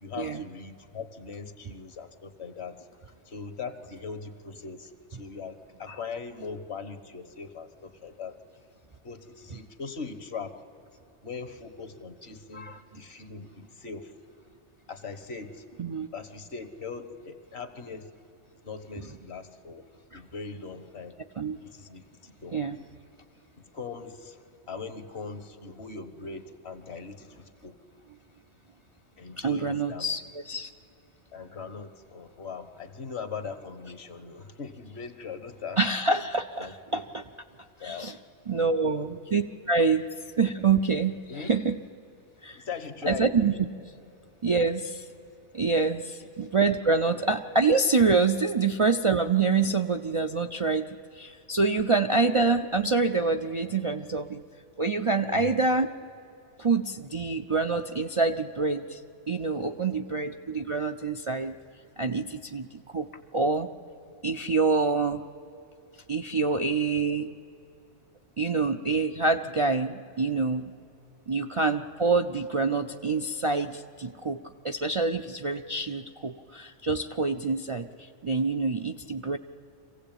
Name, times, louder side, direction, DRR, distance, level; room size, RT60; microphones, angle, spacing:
voice 1, 0.0-2.9 3.2-8.4 9.0-10.5 11.2-14.1 14.9-15.6 16.1-18.1 18.6-19.9 20.1-21.2 21.6-22.6 23.6-27.8 29.2-30.1 31.3-35.8 36.6-37.0 37.8-38.1 38.8-39.1 41.3-41.5 42.5-43.3 46.2-46.3 55.3-55.5, left 5 dB, 60° left, 11 dB, 1.5 m, -40 dB
voice 2, 29.4-30.7 35.8-37.2 37.8-38.2 38.5-40.0 40.4-41.8 42.4-42.7 43.1-43.5 44.4-45.1 45.5-54.4 54.8-55.9 56.6-59.0 59.3-61.6 62.0-63.7 64.2-65.3 66.1-67.3 68.4-70.7 71.3-79.4, right 4 dB, 40° right, 4 dB, 0.4 m, -26 dB
24.5 x 16.0 x 8.9 m, 2.7 s
omnidirectional pair, 1.3 m